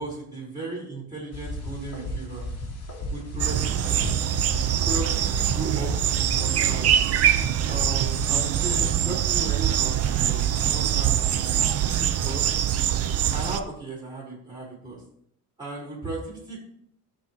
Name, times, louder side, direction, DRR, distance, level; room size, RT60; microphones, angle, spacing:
voice 1, 0.0-2.5 3.1-4.1 4.7-5.9 6.4-7.0 7.7-12.5 13.3-15.0 15.6-16.6, right 2 dB, 10° right, -6 dB, 3.3 m, -35 dB
sound 1, 1.3-9.0, equal, 50° left, 2.5 m, -34 dB
sound 2, 3.4-13.6, right 10 dB, 45° right, 0.5 m, -23 dB
13.5 x 4.6 x 2.8 m, 0.68 s
cardioid pair, 140°, 35 cm